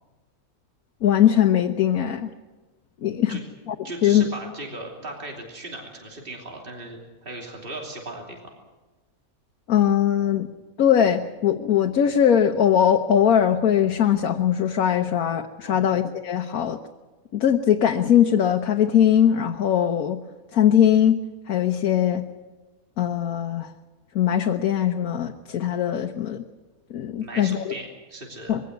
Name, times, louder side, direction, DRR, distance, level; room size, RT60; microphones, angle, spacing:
voice 1, 1.0-2.3 3.0-3.4 3.7-3.8 4.0-4.3 9.7-10.5 10.8-16.8 17.3-20.2 20.5-21.2 21.5-22.2 23.0-23.7 24.1-26.4 26.9-27.6 28.5-28.6, left 9 dB, 90° left, 4 dB, 1.4 m, -20 dB
voice 2, 3.8-8.4 15.6-15.9 27.2-28.6, right 2 dB, 40° right, 1 dB, 3.2 m, -37 dB
22.5 x 16.0 x 9.4 m, 1.2 s
omnidirectional pair, 1.5 m